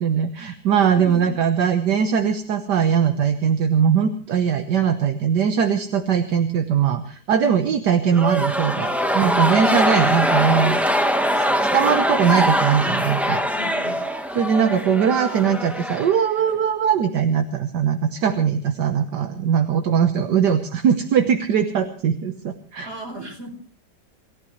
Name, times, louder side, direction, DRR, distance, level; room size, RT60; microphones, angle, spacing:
voice 1, 0.0-10.8 11.3-13.4 14.4-22.9, right 7 dB, 70° right, 7 dB, 1.7 m, -20 dB
voice 2, 0.9-1.4 13.5-14.0 22.8-23.5, right 1 dB, 35° right, 3 dB, 4.5 m, -35 dB
sound 1, 8.1-16.6, equal, ahead, 1.1 m, -22 dB
28.0 x 15.0 x 3.2 m, 0.43 s
omnidirectional pair, 1.9 m